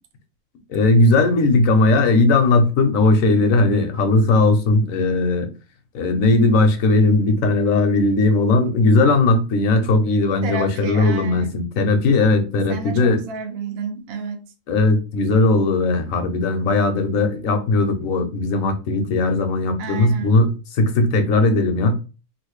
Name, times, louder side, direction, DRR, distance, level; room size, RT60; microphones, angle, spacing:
voice 1, 0.7-5.5 5.9-13.2 14.7-22.0, left 2 dB, 75° left, 1.1 m, -18 dB
voice 2, 10.4-11.5 12.7-14.4 19.8-20.4, right 4 dB, 60° right, 0.7 m, -31 dB
3.1 x 2.6 x 3.1 m
omnidirectional pair, 1.4 m